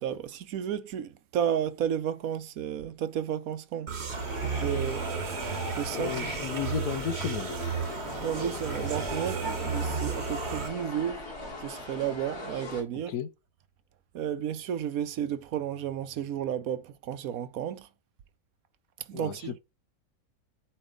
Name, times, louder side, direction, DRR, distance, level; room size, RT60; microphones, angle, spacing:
voice 1, 0.0-3.9 4.4-5.1 5.4-6.3 8.2-11.3 11.6-13.1 14.1-17.9 19.0-19.6, right 9 dB, 75° right, 1.1 m, -32 dB
sound 1, 3.9-10.7, right 6 dB, 50° right, 1.2 m, -34 dB
sound 2, 4.1-12.8, left 2 dB, 65° left, 2.8 m, -38 dB
voice 2, 5.9-7.5 13.1-13.3 19.1-19.3, left 8 dB, 80° left, 1.3 m, -33 dB
8.5 x 3.2 x 5.0 m
omnidirectional pair, 1.6 m